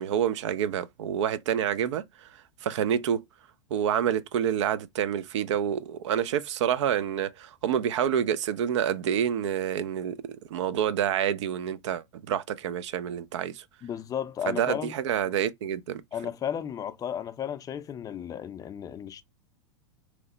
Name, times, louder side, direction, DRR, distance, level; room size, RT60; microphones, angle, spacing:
voice 1, 0.0-2.0 2.6-3.2 3.7-13.6 14.5-16.0, right 9 dB, 70° right, 0.4 m, -28 dB
voice 2, 13.8-15.0 16.1-19.2, left 9 dB, 25° left, 0.4 m, -34 dB
3.0 x 2.0 x 3.7 m
hypercardioid pair, 100°, 16 cm